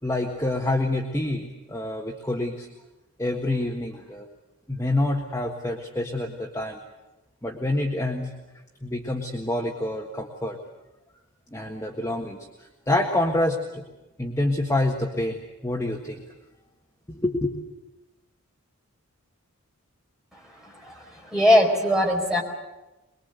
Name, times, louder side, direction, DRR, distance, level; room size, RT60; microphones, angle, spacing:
voice 1, 0.0-2.7 3.2-4.3 4.7-6.8 7.4-8.3 8.8-10.6 11.5-13.8 14.2-16.2 17.1-17.5, left 1 dB, 15° left, 0 dB, 1.6 m, -27 dB
voice 2, 21.3-22.4, left 1 dB, ahead, -2 dB, 4.6 m, -20 dB
23.0 x 23.0 x 8.1 m, 1.0 s
head